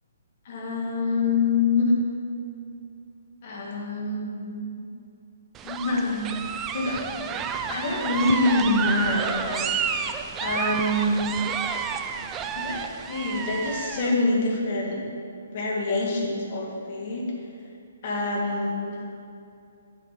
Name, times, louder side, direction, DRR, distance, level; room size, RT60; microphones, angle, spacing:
voice 1, 0.5-2.0 3.4-4.9 5.6-6.3 6.7-7.0 7.7-10.1 10.4-11.4 12.5-15.0 15.5-17.3 18.0-19.0, left 2 dB, 45° left, -2 dB, 2.1 m, -26 dB
sound 1, 5.5-14.1, right 7 dB, 20° right, 0.4 m, -30 dB
7.7 x 6.2 x 6.6 m, 2.5 s
figure-of-eight pair, 130°, 0 cm